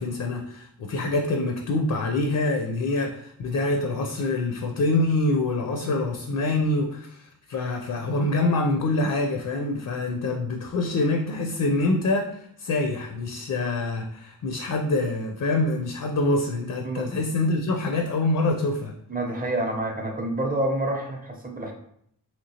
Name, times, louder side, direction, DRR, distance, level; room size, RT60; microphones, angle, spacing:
voice 1, 0.0-19.0, left 2 dB, 55° left, 3 dB, 0.4 m, -25 dB
voice 2, 19.1-21.7, right 1 dB, 20° right, 2 dB, 0.6 m, -28 dB
3.2 x 2.8 x 2.8 m, 0.69 s
wide cardioid pair, 100°, 39 cm